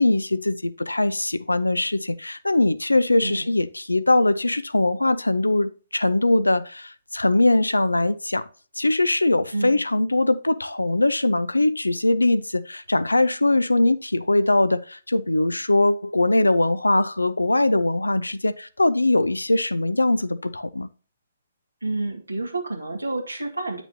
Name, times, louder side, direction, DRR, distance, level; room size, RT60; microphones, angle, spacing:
voice 1, 0.0-8.4 8.8-20.9, left 2 dB, 85° left, 0.6 m, -21 dB
voice 2, 3.2-3.5 9.5-9.8 21.8-23.8, right 2 dB, 85° right, 1.7 m, -29 dB
9.3 x 6.1 x 2.7 m
figure-of-eight pair, 130°, 0 cm